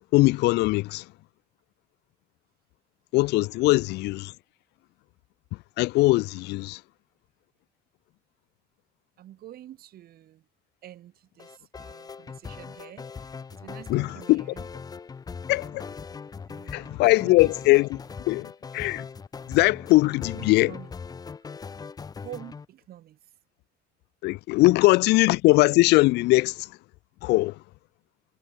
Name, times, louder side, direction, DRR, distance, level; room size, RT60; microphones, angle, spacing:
voice 1, 0.1-1.0 3.1-4.3 5.8-6.8 13.9-14.4 15.5-15.9 16.7-17.9 18.3-19.0 19.5-20.7 24.2-26.7 27.2-27.6, left 20 dB, 80° left, 0.5 m, -21 dB
voice 2, 9.2-10.5 10.8-14.7 16.5-17.5 19.5-19.8 20.3-20.9 22.2-23.2 24.6-25.0, right 12 dB, 65° right, 3.7 m, -47 dB
sound 1, 11.4-22.7, left 5 dB, 20° left, 0.5 m, -40 dB
cardioid pair, 110°, 17 cm